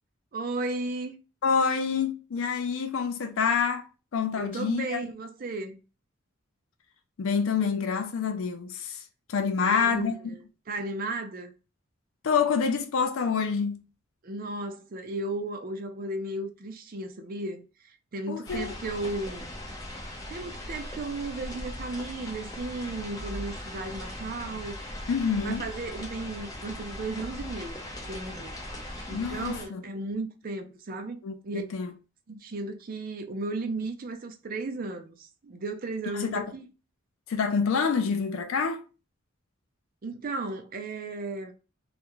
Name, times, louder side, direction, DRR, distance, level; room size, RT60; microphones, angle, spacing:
voice 1, 0.3-1.2 4.4-5.8 9.6-11.5 14.2-19.5 20.3-25.0 25.4-28.5 29.1-31.6 32.3-36.7 40.0-41.5, right 2 dB, 45° right, 0.4 m, -35 dB
voice 2, 1.4-3.8 4.1-5.0 7.2-9.0 9.3-10.1 12.2-13.8 18.3-18.7 25.1-25.6 29.1-29.8 31.2-31.9 36.1-36.5 37.3-38.8, left 6 dB, 75° left, 0.4 m, -27 dB
sound 1, 18.4-29.7, left 1 dB, 20° left, 0.6 m, -39 dB
2.4 x 2.1 x 3.0 m
head